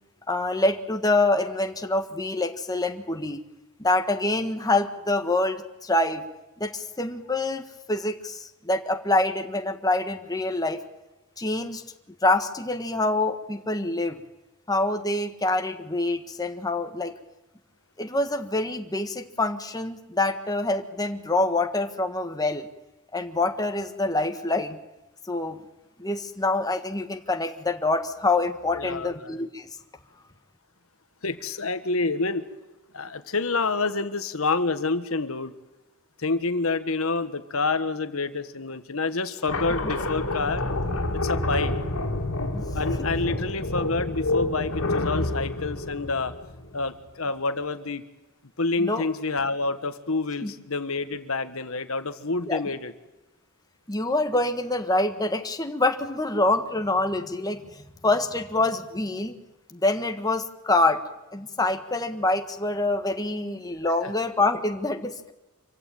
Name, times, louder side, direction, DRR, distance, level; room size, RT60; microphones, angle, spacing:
voice 1, 0.3-3.4 3.8-6.2 6.6-10.8 11.4-11.8 12.2-14.2 14.7-17.1 18.0-22.7 23.1-24.8 25.3-25.6 26.0-29.7 42.5-42.6 48.8-49.1 50.4-50.5 52.5-52.6 53.9-57.6 58.0-59.3 59.7-61.0 61.3-65.3, left 2 dB, 15° left, 6 dB, 1.5 m, -26 dB
voice 2, 28.7-29.4 31.2-32.5 32.9-35.5 36.2-40.6 41.2-41.7 42.7-46.3 46.7-48.0 48.6-52.9 63.8-64.1, left 3 dB, 70° left, 11 dB, 1.4 m, -28 dB
sound 1, 39.5-46.9, left 2 dB, 85° left, 2.5 m, -28 dB
26.5 x 16.0 x 9.1 m, 1.0 s
head